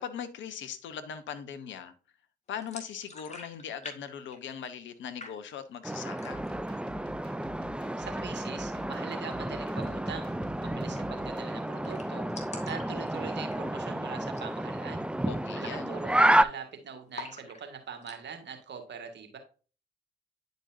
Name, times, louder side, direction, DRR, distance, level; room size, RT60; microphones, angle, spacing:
voice 1, 0.0-1.9 2.5-6.5 15.3-16.0, left 8 dB, 70° left, 9 dB, 1.0 m, -40 dB
sound 1, 2.6-4.0 4.2-4.9 5.2-5.8 6.1-6.6 7.0-7.1 7.4-8.0 9.7-9.9 10.2-10.3 10.5-10.6 10.9-11.3 11.6-11.7 11.8-13.9 14.2-14.5 14.9-15.0 15.5-16.6 17.1-18.2, left 3 dB, 35° left, 2.5 m, -46 dB
sound 2, 5.8-16.4, right 1 dB, 5° right, 0.5 m, -30 dB
sound 3, 6.3-11.5, equal, 25° right, 3.5 m, -50 dB
voice 2, 8.0-12.3 12.6-15.0 15.6-19.4, right 6 dB, 60° right, 5 dB, 2.0 m, -42 dB
10.0 x 5.3 x 2.7 m, 0.37 s
hypercardioid pair, 40°, 20 cm